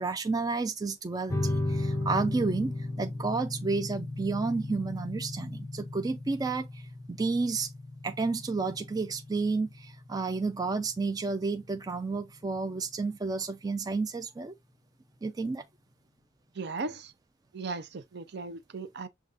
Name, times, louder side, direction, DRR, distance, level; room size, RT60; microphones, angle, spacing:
voice 1, 0.0-7.7 8.0-14.5 15.2-15.6, right 4 dB, 20° right, 0.3 m, -31 dB
sound 1, 1.3-12.3, left 2 dB, 15° left, 0.6 m, -36 dB
voice 2, 16.6-17.1 17.5-19.1, right 3 dB, 60° right, 0.6 m, -37 dB
6.6 x 2.4 x 2.5 m
head